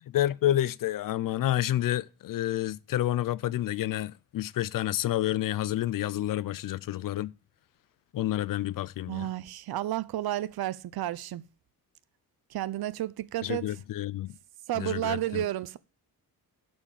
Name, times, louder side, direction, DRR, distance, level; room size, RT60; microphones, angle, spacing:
voice 1, 0.1-7.3 8.1-9.3 13.4-14.4 14.8-15.4, left 13 dB, 65° left, 0.5 m, -29 dB
voice 2, 9.1-11.4 12.5-13.7 14.7-15.8, right 13 dB, 80° right, 0.7 m, -32 dB
11.5 x 4.4 x 7.3 m
wide cardioid pair, 165°, 36 cm